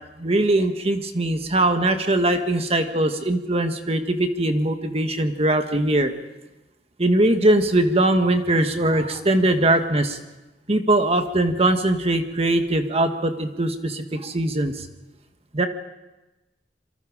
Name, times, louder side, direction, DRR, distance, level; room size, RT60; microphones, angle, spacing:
voice 1, 0.2-6.1 7.0-10.2 10.7-14.7 15.5-15.7, right 1 dB, 35° right, 6 dB, 1.5 m, -21 dB
27.0 x 24.0 x 5.0 m, 1.1 s
head